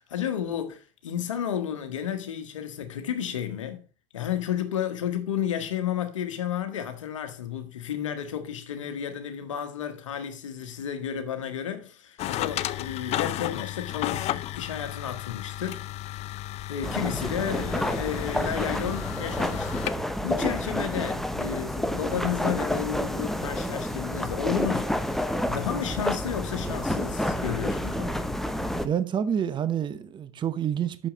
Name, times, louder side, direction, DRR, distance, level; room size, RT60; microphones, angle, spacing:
voice 1, 0.0-3.8 4.1-15.8 16.7-28.2, left 9 dB, 90° left, 1.2 m, -32 dB
sound 1, 12.2-19.9, left 14 dB, 45° left, 0.5 m, -33 dB
sound 2, 16.8-28.9, left 1 dB, ahead, 0.7 m, -29 dB
voice 2, 28.8-31.1, right 9 dB, 30° right, 0.8 m, -28 dB
6.3 x 5.7 x 5.0 m
hypercardioid pair, 90°, 16 cm